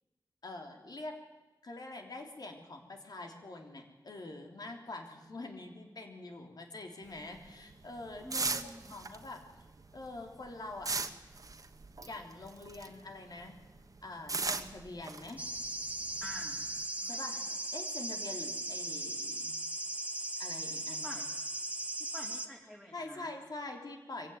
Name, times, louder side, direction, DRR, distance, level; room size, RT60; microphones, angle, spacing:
voice 1, 0.4-1.2 1.6-9.4 9.9-10.9 12.0-13.6 14.0-15.4 17.1-17.4 17.7-19.6 20.4-21.2 22.9-24.3, left 2 dB, 65° left, 3 dB, 3.3 m, -45 dB
sound 1, 7.1-13.1 13.4-16.8, right 3 dB, 50° right, 1.2 m, -38 dB
voice 2, 8.2-8.9 16.2-16.6 17.0-17.5 20.9-21.2 22.1-23.3, equal, 10° left, -2 dB, 3.3 m, -48 dB
sound 2, 15.4-22.5, right 1 dB, 20° right, 1.4 m, -38 dB
23.5 x 15.5 x 9.3 m, 1.2 s
wide cardioid pair, 90°, 7 cm